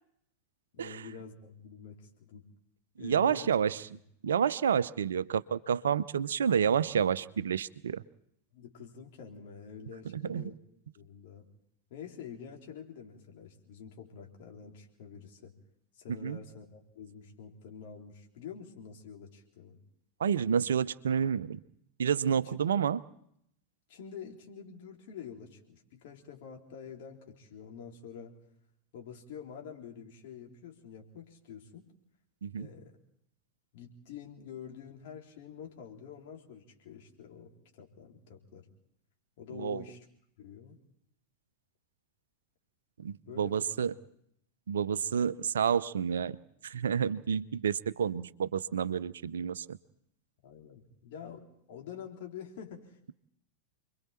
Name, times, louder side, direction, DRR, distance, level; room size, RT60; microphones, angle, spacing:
voice 1, 0.7-2.4 3.0-3.6 8.5-10.6 11.0-11.5 11.9-15.5 15.9-19.8 22.3-22.6 23.9-28.4 28.9-31.9 32.6-32.9 33.7-38.7 39.4-40.1 40.4-40.8 43.2-43.9 50.4-53.0, left 7 dB, 50° left, 1 dB, 3.9 m, -47 dB
voice 2, 3.0-3.8 4.2-8.0 10.2-10.4 16.2-16.4 20.2-21.6 22.0-23.0 32.4-32.7 39.5-39.8 43.0-43.9 44.7-46.4 46.6-49.8, right 7 dB, 65° right, 17 dB, 0.7 m, -29 dB
29.5 x 22.5 x 4.4 m, 0.73 s
figure-of-eight pair, 90°, 0 cm